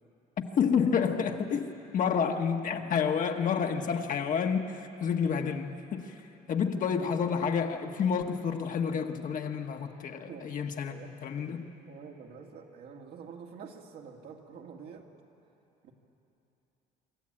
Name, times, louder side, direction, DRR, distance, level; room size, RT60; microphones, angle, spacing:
voice 1, 0.6-6.2 6.5-11.7, left 6 dB, 50° left, 4 dB, 1.3 m, -29 dB
voice 2, 10.3-11.5 11.9-15.1 15.8-15.9, right 6 dB, 70° right, 1 dB, 2.2 m, -47 dB
26.0 x 13.5 x 8.8 m, 3.0 s
cardioid pair, 110°, 17 cm